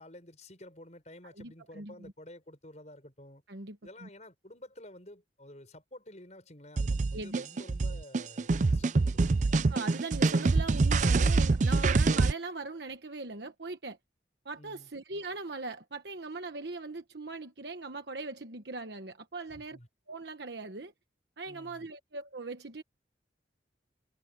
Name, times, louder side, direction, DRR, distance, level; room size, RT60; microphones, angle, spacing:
voice 1, 0.0-3.4 3.8-9.3 14.6-14.9 19.5-19.9 21.5-21.9, left 1 dB, 40° left, 6.2 m, -51 dB
voice 2, 1.4-2.1 3.5-4.1 7.1-7.4 9.5-14.0 14.4-19.8 20.1-20.9 21.4-22.8, right 3 dB, 65° right, 1.2 m, -40 dB
sound 1, 6.8-12.3, right 3 dB, 40° right, 0.4 m, -25 dB
head